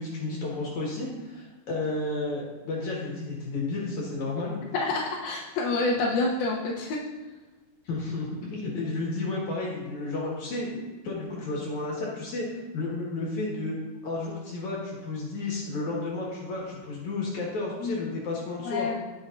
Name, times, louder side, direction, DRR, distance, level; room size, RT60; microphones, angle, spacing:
voice 1, 0.0-4.6 7.8-12.5 12.7-13.7 14.0-18.9, left 2 dB, 60° left, -4 dB, 2.8 m, -32 dB
voice 2, 4.7-7.0 17.8-18.0 18.7-19.0, left 3 dB, 90° left, -3 dB, 2.8 m, -27 dB
18.0 x 6.7 x 2.6 m, 1.2 s
omnidirectional pair, 4.1 m